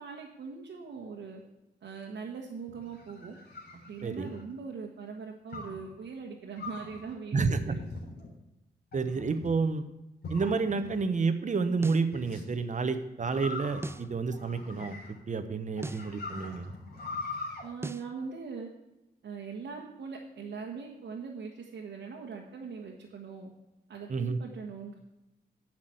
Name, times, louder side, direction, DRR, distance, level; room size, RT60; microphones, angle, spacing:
voice 1, 0.0-1.4 1.8-3.4 3.8-7.8 17.6-18.7 19.2-23.5 23.9-25.0, right 5 dB, 85° right, -1 dB, 1.5 m, -41 dB
sound 1, 2.7-4.5 5.5-5.9 6.6-7.0 7.8-8.3 8.9-9.5 10.2-11.0 12.1-12.4 13.2-15.3 15.8-17.6, left 3 dB, 65° left, 3.7 m, -41 dB
voice 2, 7.3-7.7 8.9-9.8 10.3-14.9 15.3-16.7 24.1-24.4, right 4 dB, 45° right, 10 dB, 1.0 m, -30 dB
sound 2, 11.8-12.1 13.8-14.1 15.8-16.1 17.8-18.1, right 2 dB, 15° right, 0.4 m, -38 dB
10.0 x 6.1 x 7.8 m, 0.97 s
cardioid pair, 95°, 18 cm